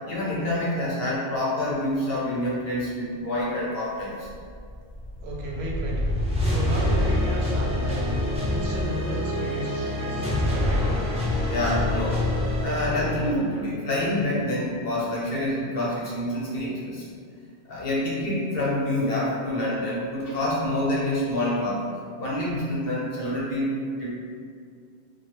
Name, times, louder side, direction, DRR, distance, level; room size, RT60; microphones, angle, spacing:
voice 1, 0.1-4.3 11.5-12.2 12.6-17.1 17.6-21.9 22.2-24.1, left 1 dB, 60° left, -6 dB, 0.9 m, -27 dB
sound 1, 4.2-13.3, left 1 dB, 10° right, 0.3 m, -26 dB
voice 2, 5.2-11.0, right 1 dB, 70° right, -2 dB, 0.8 m, -34 dB
3.1 x 2.3 x 2.9 m, 2.2 s
omnidirectional pair, 1.1 m